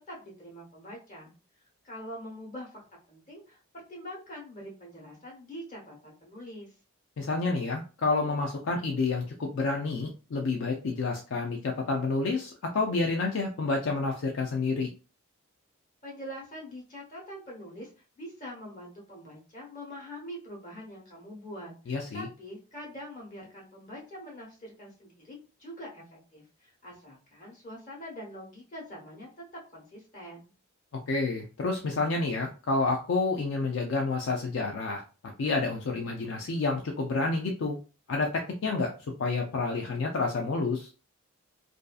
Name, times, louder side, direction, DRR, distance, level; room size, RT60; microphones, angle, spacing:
voice 1, 0.1-1.3 1.8-2.8 3.1-6.7 16.0-17.9 18.2-29.3 29.7-30.5, equal, 35° left, -3 dB, 1.0 m, -44 dB
voice 2, 7.2-14.9 21.9-22.3 31.1-35.0 35.4-37.8 38.1-38.9 39.2-40.9, left 3 dB, 60° left, 1 dB, 0.4 m, -29 dB
2.5 x 2.4 x 2.3 m, 0.33 s
head